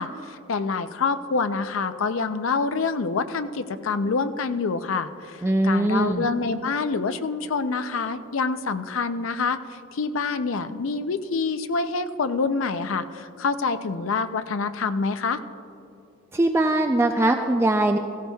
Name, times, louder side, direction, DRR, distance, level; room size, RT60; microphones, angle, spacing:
voice 1, 0.0-15.4, left 4 dB, 65° left, 10 dB, 0.5 m, -26 dB
voice 2, 5.4-6.3 16.3-18.0, right 1 dB, 10° right, 5 dB, 0.3 m, -21 dB
17.0 x 15.0 x 2.3 m, 2.6 s
head